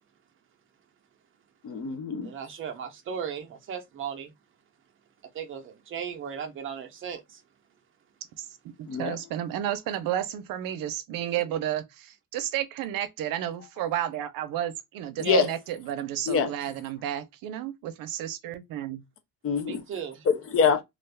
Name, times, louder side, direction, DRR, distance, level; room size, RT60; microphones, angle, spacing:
voice 1, 1.6-2.3 8.9-9.2 15.2-15.5 16.3-16.5 19.4-19.8 20.3-20.8, left 5 dB, 45° left, 0.5 m, -24 dB
voice 2, 2.2-4.3 5.3-7.4 15.2-15.5 19.7-20.3, right 8 dB, 40° right, 0.6 m, -36 dB
voice 3, 8.4-19.0, right 11 dB, 80° right, 0.6 m, -32 dB
2.5 x 2.3 x 3.3 m
cardioid pair, 165°, 33 cm